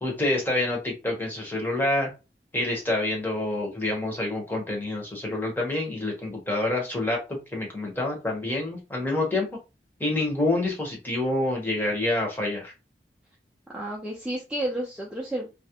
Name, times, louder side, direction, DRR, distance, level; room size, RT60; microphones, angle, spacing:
voice 1, 0.0-2.1 2.5-9.5 10.0-12.7, left 2 dB, 10° left, -1 dB, 0.8 m, -27 dB
voice 2, 13.7-15.5, right 1 dB, 5° right, -4 dB, 0.4 m, -31 dB
2.3 x 2.0 x 2.8 m, 0.28 s
head